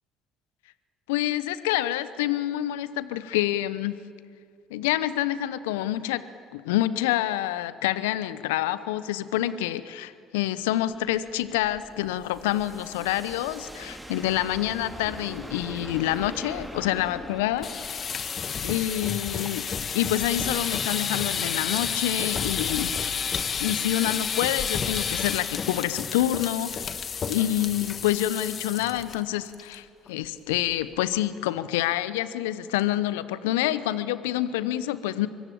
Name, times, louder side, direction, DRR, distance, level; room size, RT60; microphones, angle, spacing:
voice 1, 1.1-4.0 4.7-6.2 6.5-17.8 18.6-19.7 19.9-23.1 23.6-26.9 27.3-35.3, left 13 dB, 75° left, 15 dB, 0.9 m, -27 dB
sound 1, 10.9-19.8, equal, 5° right, 2.2 m, -43 dB
sound 2, 17.5-29.2 29.5-29.8 30.1-30.2 30.5-30.9, left 6 dB, 45° left, 1.5 m, -30 dB
23.5 x 23.5 x 8.8 m, 2.3 s
hypercardioid pair, 55°, 0 cm